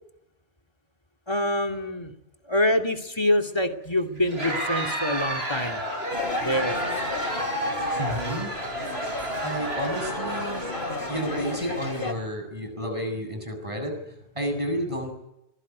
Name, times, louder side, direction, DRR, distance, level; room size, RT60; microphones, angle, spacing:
voice 1, 1.3-2.1 2.4-5.8 6.4-6.8, left 1 dB, 25° left, 4 dB, 2.6 m, -25 dB
Crowd, 4.2-11.7, right 1 dB, 75° right, 5.1 m, -31 dB
sound 1, 6.1-12.1, left 2 dB, 55° left, 3.2 m, -33 dB
voice 2, 8.0-8.5 9.4-10.7 11.1-15.1, equal, 30° right, 5 dB, 7.7 m, -31 dB
25.5 x 22.0 x 9.6 m, 0.83 s
omnidirectional pair, 1.1 m